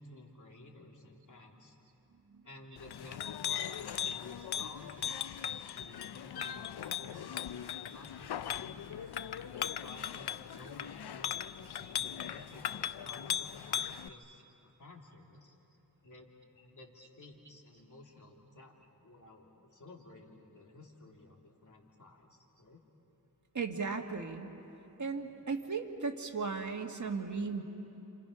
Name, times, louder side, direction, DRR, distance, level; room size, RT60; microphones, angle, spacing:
voice 1, 0.0-1.7 2.4-7.5 7.9-8.8 9.7-15.5 16.0-22.3 22.6-22.8 25.2-25.3, left 2 dB, 50° left, 0 dB, 3.0 m, -54 dB
Chink clink, 2.8-14.1, left 9 dB, 90° left, 0.6 m, -38 dB
voice 2, 23.5-24.5 25.0-27.6, right 4 dB, 50° right, 3 dB, 1.9 m, -36 dB
29.5 x 27.5 x 5.7 m, 3.0 s
wide cardioid pair, 80°, 38 cm